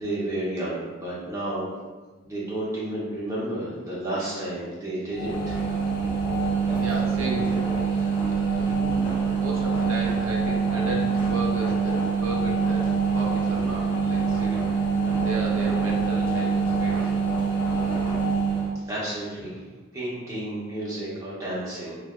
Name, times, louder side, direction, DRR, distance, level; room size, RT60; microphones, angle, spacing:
voice 1, 0.0-1.7 2.2-5.6 17.7-17.8 18.9-19.6 19.9-22.0, right 1 dB, 15° right, -8 dB, 0.7 m, -31 dB
sound 1, 5.1-18.7, right 5 dB, 25° left, 0.5 m, -25 dB
voice 2, 6.7-9.0 9.4-14.7 15.2-17.2, right 1 dB, 80° right, -3 dB, 0.6 m, -34 dB
3.2 x 2.3 x 2.2 m, 1.3 s
head